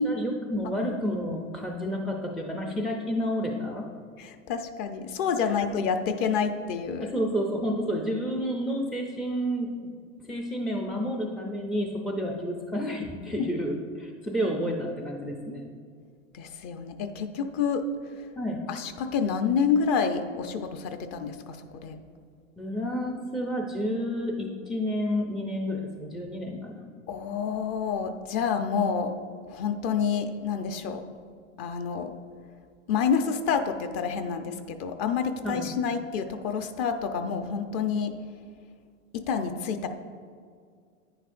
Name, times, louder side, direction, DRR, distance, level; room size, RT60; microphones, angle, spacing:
voice 1, 0.0-3.8 5.4-5.6 7.0-9.7 10.3-15.7 18.4-18.6 22.6-26.8 35.4-35.7, equal, ahead, 0 dB, 0.3 m, -30 dB
voice 2, 4.2-7.1 13.4-13.5 16.3-17.9 18.7-22.0 27.1-29.1 29.5-31.0 31.6-32.1 32.9-38.1 39.1-39.9, left 6 dB, 45° left, 7 dB, 0.8 m, -28 dB
9.9 x 9.7 x 2.5 m, 2.2 s
hypercardioid pair, 120°, 39 cm